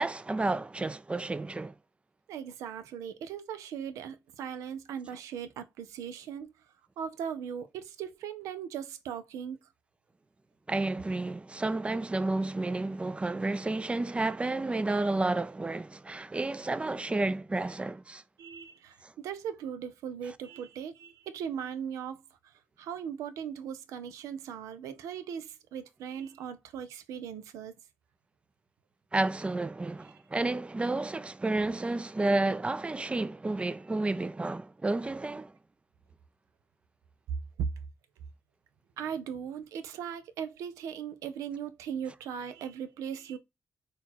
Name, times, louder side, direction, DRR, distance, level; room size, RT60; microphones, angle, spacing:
voice 1, 0.0-1.7 10.7-18.2 19.0-19.1 29.1-35.5, right 2 dB, 20° right, 0.4 m, -31 dB
voice 2, 2.3-6.7 7.0-9.7 18.4-27.7 30.1-30.2 37.6-37.7 39.0-43.4, right 8 dB, 85° right, 0.4 m, -38 dB
3.9 x 2.3 x 4.1 m
supercardioid pair, 45°, 5 cm